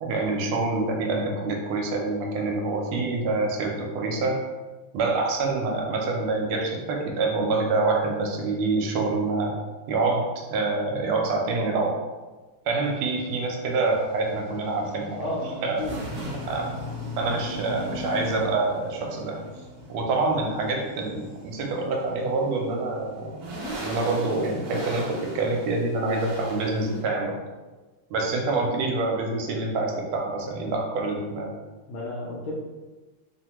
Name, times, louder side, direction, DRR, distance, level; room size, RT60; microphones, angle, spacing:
voice 1, 0.0-4.4 4.9-9.6 9.9-12.0 12.7-15.2 15.6-15.9 16.5-16.7 17.2-19.4 19.9-23.4 23.8-27.4 28.1-31.5, right 3 dB, 85° right, 1 dB, 1.5 m, -26 dB
sound 1, 12.8-27.0, equal, 60° right, 1.1 m, -38 dB
voice 2, 15.2-16.0 31.9-32.5, left 2 dB, 80° left, -7 dB, 1.4 m, -32 dB
3.6 x 2.1 x 2.9 m, 1.3 s
omnidirectional pair, 2.3 m